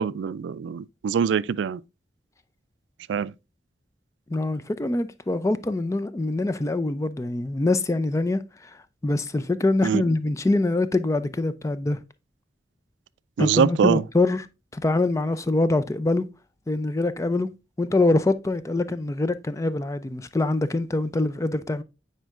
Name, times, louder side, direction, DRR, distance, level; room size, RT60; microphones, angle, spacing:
voice 1, 0.0-1.8 3.1-3.3 9.8-10.0 13.4-14.0, right 7 dB, 90° right, 0.3 m, -23 dB
voice 2, 4.3-8.8 9.0-12.0 13.4-14.5 14.7-16.3 16.7-17.5 17.8-21.8, left 2 dB, 15° left, 0.4 m, -24 dB
9.2 x 4.4 x 2.4 m
head